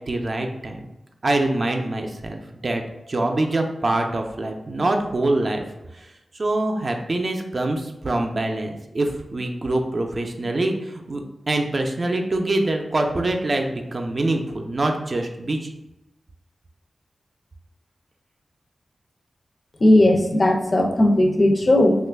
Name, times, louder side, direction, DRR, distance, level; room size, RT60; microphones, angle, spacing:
voice 1, 0.1-0.9 1.2-2.8 3.1-5.6 5.9-15.7, right 2 dB, 45° right, 3 dB, 0.4 m, -24 dB
voice 2, 19.8-22.0, left 1 dB, 40° left, 3 dB, 0.5 m, -17 dB
3.0 x 2.4 x 3.4 m, 0.95 s
wide cardioid pair, 70°, 0 cm